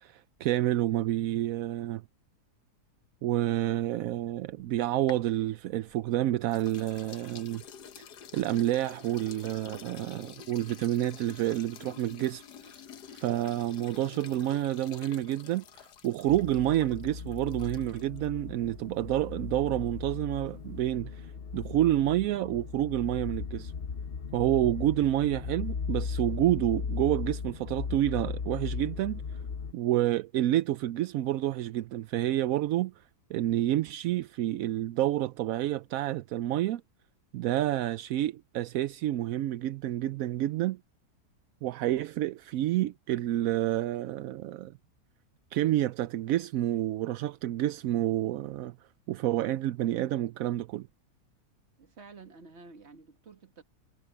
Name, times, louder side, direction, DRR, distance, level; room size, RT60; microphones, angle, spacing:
voice 1, 0.0-2.0 3.2-7.6 8.0-8.1 8.3-12.8 13.1-23.7 24.3-29.2 29.7-33.0 33.3-36.8 37.3-40.8 41.6-44.7 45.5-48.8 49.1-50.9, right 13 dB, 70° right, 0.9 m, -29 dB
sound 1, 4.5-6.1 6.5-18.3, left 8 dB, 85° left, 1.6 m, -49 dB
sound 2, 16.3-29.7, left 5 dB, 45° left, 0.9 m, -37 dB
voice 2, 51.8-53.6, right 4 dB, 45° right, 1.8 m, -51 dB
omnidirectional pair, 1.7 m